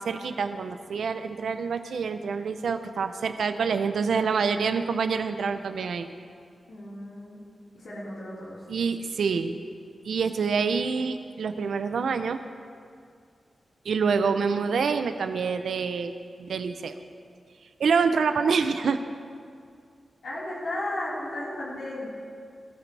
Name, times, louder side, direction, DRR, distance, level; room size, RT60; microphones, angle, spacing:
voice 1, 0.0-6.1 8.7-9.6 10.0-12.4 13.8-16.1 16.4-17.0 17.8-19.0, right 5 dB, 90° right, 9 dB, 0.6 m, -26 dB
voice 2, 6.7-7.4 7.7-8.6 20.2-22.1, left 1 dB, 80° left, -8 dB, 4.4 m, -34 dB
22.0 x 14.0 x 3.4 m, 2.2 s
wide cardioid pair, 90°, 0 cm